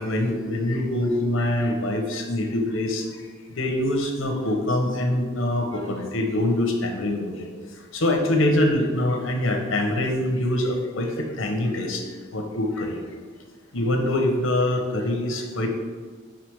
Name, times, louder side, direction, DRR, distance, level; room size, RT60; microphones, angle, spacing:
voice 1, 0.0-3.3 3.5-13.0 13.7-15.7, left 1 dB, 75° left, 3 dB, 0.9 m, -24 dB
5.0 x 4.3 x 4.7 m, 1.5 s
head